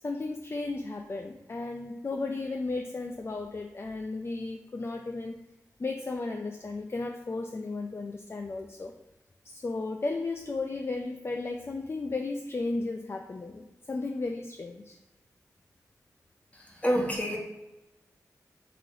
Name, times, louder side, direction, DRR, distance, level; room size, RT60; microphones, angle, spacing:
voice 1, 0.0-5.4 5.8-8.9 9.4-15.0, left 3 dB, 40° left, 4 dB, 0.4 m, -34 dB
voice 2, 16.5-17.4, equal, 20° left, -1 dB, 1.2 m, -28 dB
3.9 x 3.0 x 3.8 m, 1.0 s
cardioid pair, 50°, 7 cm